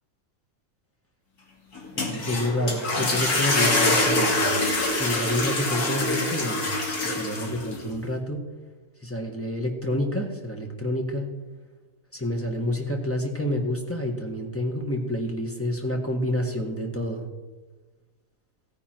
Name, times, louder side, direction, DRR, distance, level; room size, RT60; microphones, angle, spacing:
sound 1, 1.8-7.8, left 2 dB, 75° left, 2.5 m, -25 dB
voice 1, 1.9-4.5 4.9-6.7 7.0-8.4 9.0-11.3 12.1-17.2, left 1 dB, 10° left, 1 dB, 1.5 m, -28 dB
15.5 x 9.8 x 4.6 m, 1.3 s
omnidirectional pair, 1.6 m